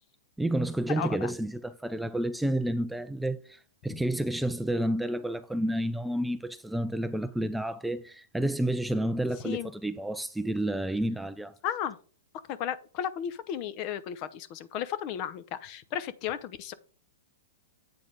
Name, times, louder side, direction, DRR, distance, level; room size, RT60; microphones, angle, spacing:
voice 1, 0.4-11.5, right 1 dB, 5° right, 0.4 m, -30 dB
voice 2, 1.0-1.3 9.4-9.7 11.6-12.0 12.5-16.7, left 9 dB, 40° left, 0.8 m, -34 dB
8.6 x 4.2 x 5.0 m
hypercardioid pair, 135°, 0 cm